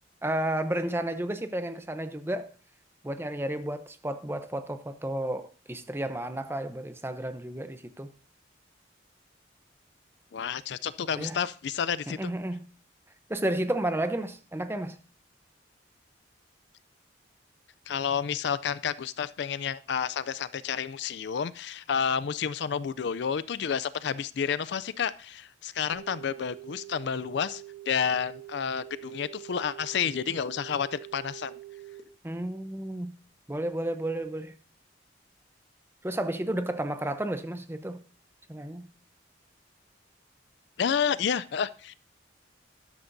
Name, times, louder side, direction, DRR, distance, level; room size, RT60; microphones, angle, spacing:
voice 1, 0.2-2.5 3.0-8.1 11.2-11.4 12.1-12.7 13.3-15.0 32.2-33.1 33.5-34.5 36.0-38.0 38.5-38.9, right 1 dB, 10° right, 0.7 m, -32 dB
voice 2, 10.3-12.3 17.9-31.6 40.8-41.9, left 7 dB, 60° left, 0.4 m, -30 dB
sound 1, 25.9-32.0, right 15 dB, 90° left, 2.4 m, -45 dB
13.5 x 11.5 x 2.6 m
head